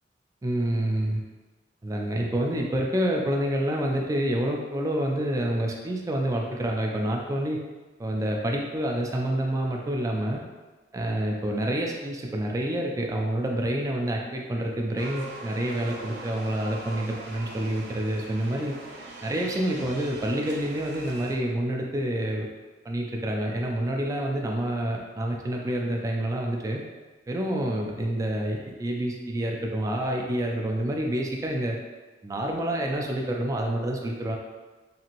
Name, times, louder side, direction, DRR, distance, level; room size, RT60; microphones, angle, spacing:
voice 1, 0.4-1.2 1.8-7.6 8.0-10.4 10.9-18.7 19.2-22.5 22.8-26.8 27.3-31.8 32.2-34.4, right 1 dB, 20° right, 0 dB, 0.3 m, -28 dB
sound 1, 15.0-21.3, right 2 dB, 70° right, 0.5 m, -42 dB
2.8 x 2.5 x 2.9 m, 1.2 s
head